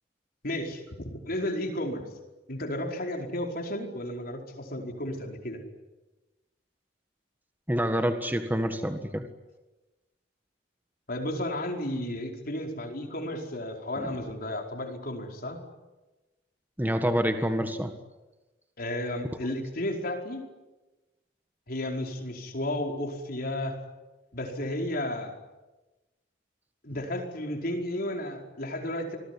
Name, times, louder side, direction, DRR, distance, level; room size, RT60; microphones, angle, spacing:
voice 1, 0.4-2.0 2.5-5.6 11.1-15.6 18.8-20.4 21.7-23.8 24.3-25.3 26.8-29.2, left 1 dB, 55° left, 2 dB, 4.9 m, -33 dB
voice 2, 7.7-9.2 14.0-14.2 16.8-17.9, equal, 10° right, 6 dB, 1.6 m, -27 dB
27.5 x 20.5 x 9.9 m, 1.1 s
head